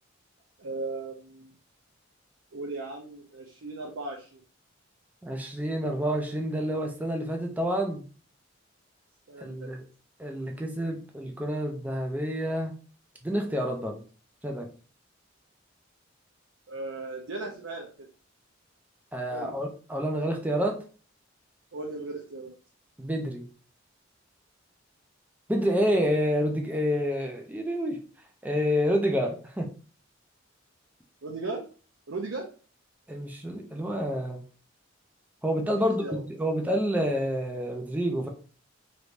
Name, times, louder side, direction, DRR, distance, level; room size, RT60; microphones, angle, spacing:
voice 1, 0.6-1.5 2.5-4.4 9.3-9.7 16.7-18.1 19.3-19.5 21.7-22.5 31.2-31.6 32.1-32.5 36.0-36.2, right 3 dB, 65° right, -1 dB, 0.6 m, -37 dB
voice 2, 5.2-8.0 9.4-9.8 10.2-12.7 13.2-14.0 14.4-14.7 19.1-20.8 23.0-23.5 25.5-28.0 28.4-29.7 33.1-34.4 35.4-38.3, equal, 10° right, 2 dB, 0.5 m, -28 dB
3.2 x 3.0 x 2.5 m, 0.39 s
head